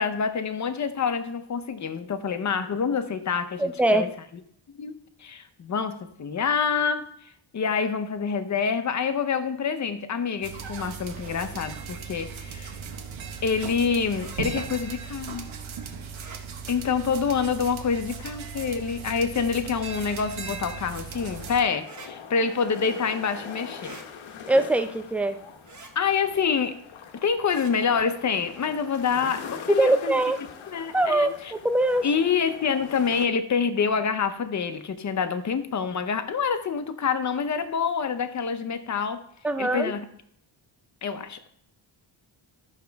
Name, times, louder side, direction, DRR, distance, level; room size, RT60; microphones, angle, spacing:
voice 1, 0.0-4.1 4.7-4.9 5.2-7.1 7.5-12.8 13.4-15.5 16.7-24.0 26.0-26.8 27.2-30.1 30.7-31.5 32.0-39.2 39.6-40.1 41.0-41.5, left 6 dB, 40° left, 10 dB, 0.7 m, -27 dB
voice 2, 3.6-4.1 24.5-25.4 29.7-30.4 30.9-32.1 39.4-39.9, right 2 dB, 5° right, 8 dB, 0.4 m, -22 dB
sound 1, 10.4-21.6, right 6 dB, 85° right, 1.3 m, -38 dB
sound 2, 14.1-14.4 16.1-16.4 18.0-18.4 20.0-20.3 21.8-22.1 23.8-24.1 25.6-25.9 27.4-27.7, right 4 dB, 40° right, 1.1 m, -46 dB
sound 3, 21.1-33.3, left 6 dB, 75° left, 1.0 m, -43 dB
12.5 x 6.4 x 3.4 m, 0.71 s
wide cardioid pair, 180°, 47 cm